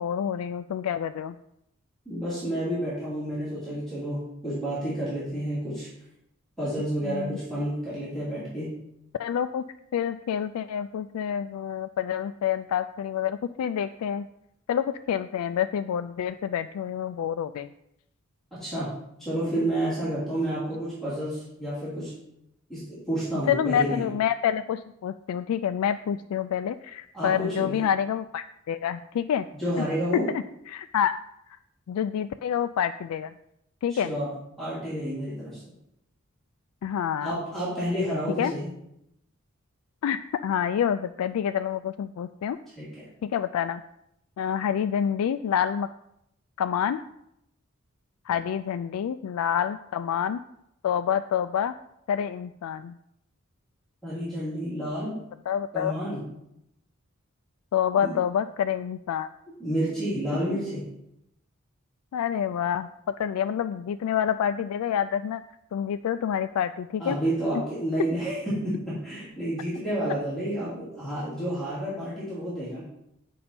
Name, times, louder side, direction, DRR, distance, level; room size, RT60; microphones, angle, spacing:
voice 1, 0.0-1.4 7.0-7.4 9.2-9.6 9.9-14.3 14.7-17.7 19.6-19.8 23.5-29.5 29.8-29.9 30.3-31.2 31.5-31.6 31.9-33.3 33.8-34.1 36.8-37.4 38.4-38.5 40.0-42.6 43.2-43.8 44.4-45.9 46.6-47.0 48.3-50.4 50.8-51.7 52.1-53.0 55.5-55.9 57.7-59.3 62.1-62.9 63.2-65.4 65.7-67.2, left 8 dB, 85° left, 11 dB, 0.3 m, -27 dB
voice 2, 2.1-5.9 6.6-8.8 18.6-22.1 22.7-24.1 27.1-27.9 29.6-30.3 33.9-34.3 34.6-35.6 37.2-38.7 42.8-42.9 54.0-55.2 55.7-56.3 58.0-58.1 59.6-60.8 67.0-72.8, right 1 dB, ahead, -10 dB, 2.7 m, -30 dB
8.4 x 5.4 x 4.3 m, 0.81 s
head